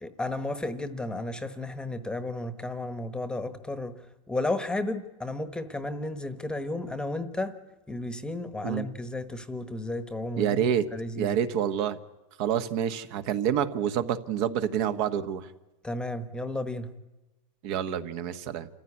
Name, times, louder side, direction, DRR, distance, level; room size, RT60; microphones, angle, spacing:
voice 1, 0.0-4.0 4.3-7.5 7.9-11.4 15.8-16.9, left 2 dB, 5° left, 11 dB, 1.2 m, -33 dB
voice 2, 10.4-10.8 11.1-12.0 12.4-15.5 17.6-18.7, right 9 dB, 50° right, 10 dB, 1.4 m, -27 dB
27.5 x 15.0 x 9.8 m, 1.1 s
supercardioid pair, 145°, 18 cm